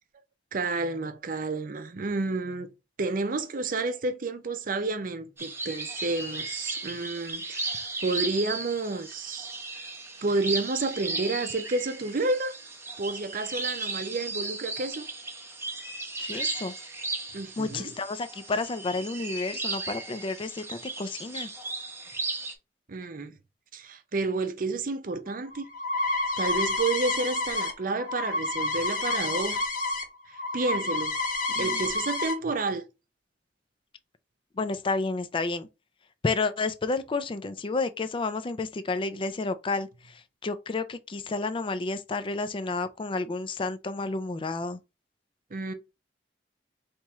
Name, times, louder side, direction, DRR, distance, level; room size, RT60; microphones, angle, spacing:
voice 1, 0.5-2.7 3.0-9.9 10.2-12.6 13.0-15.1 17.3-17.9 22.9-23.4 23.7-25.6 26.4-29.6 30.5-31.2 31.6-32.9 45.5-45.7, right 3 dB, 50° right, 0.6 m, -30 dB
sound 1, 5.4-22.5, right 3 dB, 15° right, 0.8 m, -36 dB
voice 2, 16.2-16.7 17.6-21.5 31.6-31.8 34.6-35.7 36.2-44.8, left 3 dB, 30° left, 0.4 m, -31 dB
sound 2, 25.3-30.0 30.3-32.3, left 3 dB, 50° left, 1.0 m, -29 dB
4.2 x 3.0 x 3.5 m
head